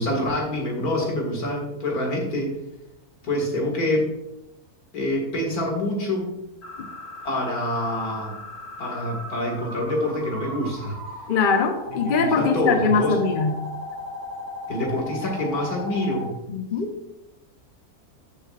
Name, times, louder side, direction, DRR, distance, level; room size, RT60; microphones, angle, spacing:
voice 1, 0.0-2.5 3.2-4.1 4.9-6.3 7.2-8.4 8.8-11.0 12.0-13.1 14.7-16.3, left 1 dB, 80° left, 0 dB, 2.5 m, -26 dB
sound 1, 6.6-16.3, left 2 dB, 55° left, 2.5 m, -37 dB
voice 2, 11.3-13.6 16.5-16.9, left 5 dB, 40° left, 5 dB, 0.9 m, -22 dB
13.0 x 6.7 x 2.4 m, 0.89 s
omnidirectional pair, 1.6 m